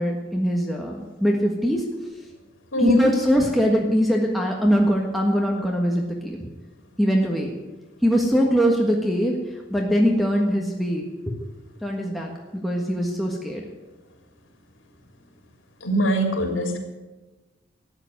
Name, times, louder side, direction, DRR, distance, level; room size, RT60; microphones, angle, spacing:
voice 1, 0.0-1.8 2.8-6.4 7.0-7.5 8.0-9.3 9.7-11.0 11.8-12.3 12.6-13.6, equal, ahead, 0 dB, 1.5 m, -22 dB
voice 2, 2.7-3.1 15.8-16.8, equal, 80° left, 3 dB, 3.3 m, -22 dB
13.5 x 9.0 x 9.5 m, 1.2 s
head